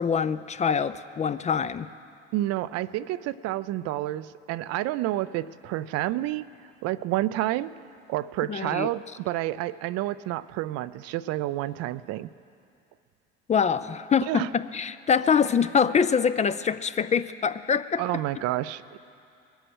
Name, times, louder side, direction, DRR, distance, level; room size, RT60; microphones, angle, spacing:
voice 1, 0.0-1.9 8.5-8.9 13.5-18.0, left 6 dB, 25° left, 13 dB, 0.4 m, -24 dB
voice 2, 2.3-7.7 8.1-12.3 14.3-14.5 18.0-19.0, right 15 dB, 60° right, 16 dB, 0.5 m, -29 dB
21.5 x 8.0 x 6.2 m, 2.5 s
hypercardioid pair, 80°, 29 cm